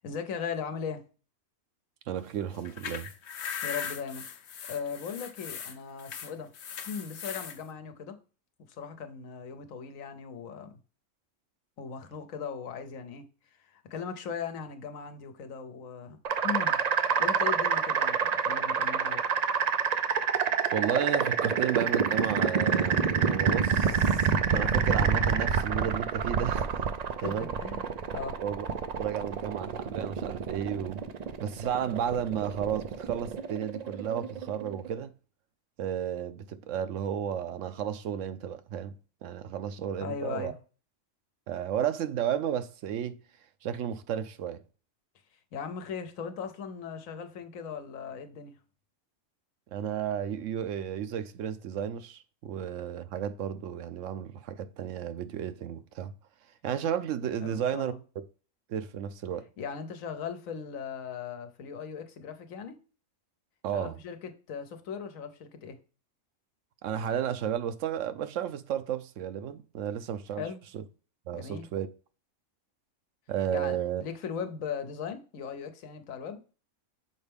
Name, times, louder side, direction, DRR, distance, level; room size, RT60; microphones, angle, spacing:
voice 1, 0.0-1.0 3.6-6.5 6.8-8.2 8.7-10.8 11.8-16.2 16.4-16.8 17.2-19.2 27.1-28.4 40.0-40.6 45.5-48.6 57.4-58.0 59.6-62.8 63.7-65.8 70.4-70.6 71.3-71.7 73.5-76.4, left 6 dB, 85° left, 1.2 m, -38 dB
voice 2, 2.1-3.1 20.7-26.8 27.2-27.5 28.4-31.0 31.4-35.1 35.8-38.9 39.2-40.5 41.5-43.2 43.6-44.6 49.7-56.1 56.6-57.9 58.7-59.5 63.6-64.0 66.8-70.4 70.7-70.8 71.3-71.9 73.3-74.0, right 9 dB, 70° right, 0.9 m, -33 dB
sound 1, 2.5-7.6, left 7 dB, 60° left, 0.9 m, -39 dB
sound 2, 16.2-35.0, right 6 dB, 90° right, 0.3 m, -28 dB
6.4 x 4.4 x 3.4 m
omnidirectional pair, 1.4 m